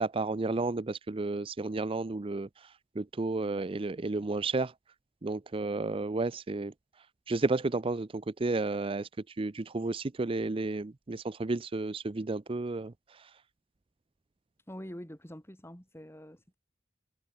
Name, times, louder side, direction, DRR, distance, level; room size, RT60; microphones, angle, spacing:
voice 1, 0.0-4.7 5.2-13.4, right 3 dB, 30° right, 0.5 m, -32 dB
voice 2, 14.7-16.5, equal, 15° left, 4.7 m, -45 dB
head